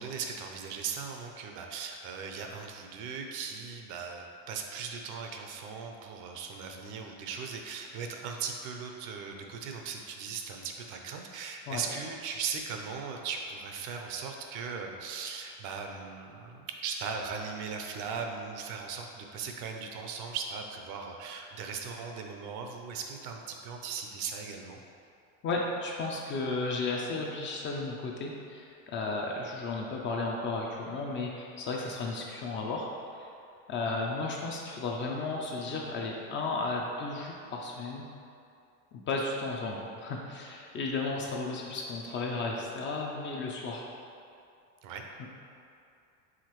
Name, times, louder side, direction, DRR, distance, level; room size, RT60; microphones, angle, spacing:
voice 1, 0.0-24.8 44.8-45.0, right 5 dB, 50° right, 3 dB, 0.6 m, -38 dB
voice 2, 25.4-33.3 33.7-38.1 38.9-43.9 45.2-45.3, left 3 dB, 30° left, -1 dB, 0.4 m, -34 dB
4.9 x 3.5 x 3.0 m, 2.5 s
supercardioid pair, 125°, 40 cm